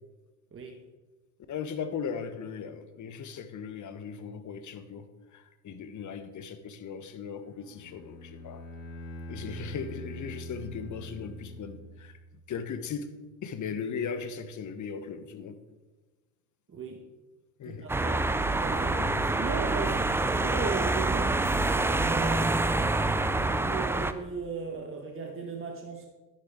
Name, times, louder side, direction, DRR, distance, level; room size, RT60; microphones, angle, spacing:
voice 1, 1.5-8.6 9.3-12.2 12.5-13.1 13.4-15.6 17.6-17.9 19.0-19.2, left 6 dB, 40° left, 10 dB, 1.2 m, -38 dB
Bowed string instrument, 7.5-12.3, equal, 65° left, 1.6 m, -43 dB
voice 2, 16.7-17.0 17.6-21.4 21.7-22.5 23.5-26.1, right 4 dB, 25° right, 2 dB, 1.5 m, -37 dB
sound 1, 17.9-24.1, right 2 dB, 5° right, 0.4 m, -26 dB
11.5 x 9.7 x 3.7 m, 1.2 s
hypercardioid pair, 65°, 48 cm